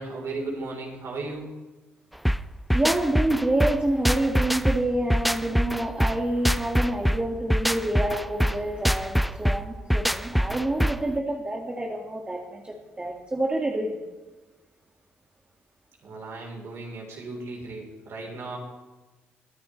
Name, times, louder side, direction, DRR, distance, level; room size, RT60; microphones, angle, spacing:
voice 1, 0.0-1.6 16.0-18.6, right 3 dB, 55° right, 0 dB, 3.9 m, -36 dB
sound 1, 2.3-11.1, equal, ahead, 0.4 m, -24 dB
voice 2, 2.7-14.0, right 1 dB, 20° right, 0 dB, 2.0 m, -27 dB
21.5 x 10.0 x 3.3 m, 1.2 s
hypercardioid pair, 50°, 6 cm